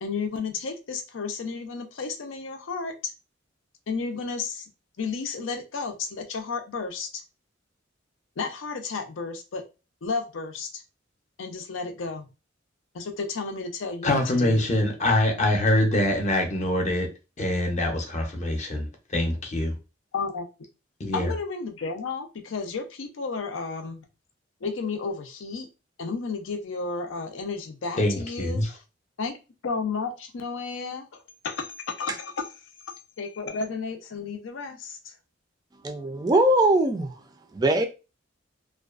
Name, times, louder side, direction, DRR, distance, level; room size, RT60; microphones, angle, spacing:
voice 1, 0.0-3.1 3.9-4.7 5.0-7.2 8.4-9.6 10.0-10.8 11.4-12.3 12.9-14.6 20.1-20.5 21.1-24.1 24.6-25.7 26.0-28.8 29.2-29.4 29.6-31.1 31.4-32.3 33.2-35.1, left 4 dB, 90° left, 0.5 m, -32 dB
voice 2, 14.0-17.1 17.4-19.7 21.0-21.3 28.0-28.7, left 1 dB, 35° left, 0.6 m, -24 dB
voice 3, 35.8-37.1 37.5-37.9, right 1 dB, 20° right, 0.3 m, -21 dB
2.4 x 2.2 x 2.3 m
head